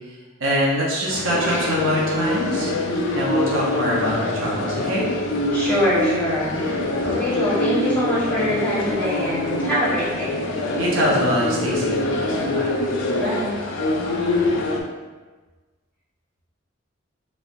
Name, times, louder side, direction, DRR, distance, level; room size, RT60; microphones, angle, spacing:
voice 1, 0.1-2.7 3.1-5.0 10.8-12.7, equal, 85° right, -5 dB, 0.8 m, -24 dB
sound 1, 1.1-14.8, left 2 dB, 70° left, 0.5 m, -24 dB
voice 2, 5.5-10.3 13.1-13.6, equal, 10° left, -11 dB, 1.2 m, -24 dB
3.5 x 3.2 x 2.6 m, 1.3 s
head